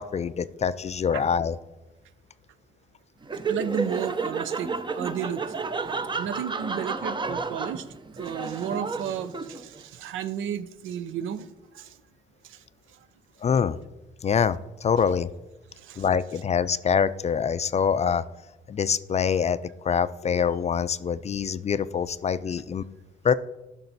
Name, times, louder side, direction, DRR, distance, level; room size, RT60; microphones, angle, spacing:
voice 1, 0.0-1.6 13.4-13.8 14.2-15.3 16.0-18.3 18.7-19.6 19.8-22.8 23.2-23.3, left 7 dB, 35° left, 14 dB, 0.4 m, -25 dB
Laughter, 3.2-9.8, right 4 dB, 25° right, 0.6 m, -31 dB
voice 2, 3.5-5.4 6.2-7.8 8.1-11.9 12.4-12.6 15.8-16.1 19.9-20.0, right 9 dB, 80° right, 14 dB, 0.6 m, -33 dB
13.0 x 5.8 x 4.1 m, 1.1 s
cardioid pair, 90°, 20 cm